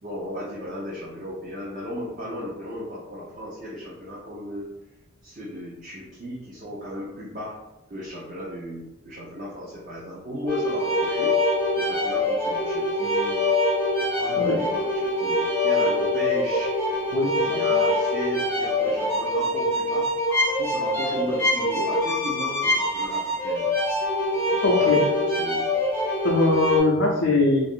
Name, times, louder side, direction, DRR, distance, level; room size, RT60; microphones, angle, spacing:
voice 1, 0.0-4.7 5.2-7.6 7.9-11.4 11.7-13.4 14.0-16.8 17.4-20.1 20.6-23.7 24.6-25.7, equal, 40° right, -7 dB, 0.6 m, -35 dB
sound 1, 10.5-26.8, left 1 dB, 10° left, 0.6 m, -24 dB
voice 2, 17.1-17.6 20.4-20.5 24.6-25.0 26.2-27.7, left 3 dB, 65° left, -3 dB, 0.5 m, -21 dB
2.5 x 2.4 x 3.6 m, 0.94 s
head